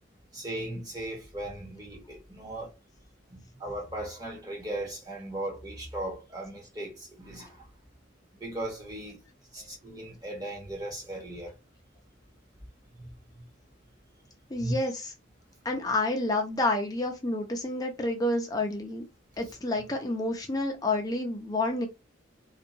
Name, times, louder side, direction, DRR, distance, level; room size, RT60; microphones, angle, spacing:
voice 1, 0.3-2.7 3.3-7.7 8.4-9.2 9.5-11.5 13.0-13.1 14.6-14.7 19.4-19.5, right 1 dB, 20° right, 1.0 m, -37 dB
voice 2, 14.5-15.1 15.6-19.0 19.4-21.9, left 2 dB, 20° left, 0.4 m, -29 dB
2.7 x 2.3 x 2.6 m
head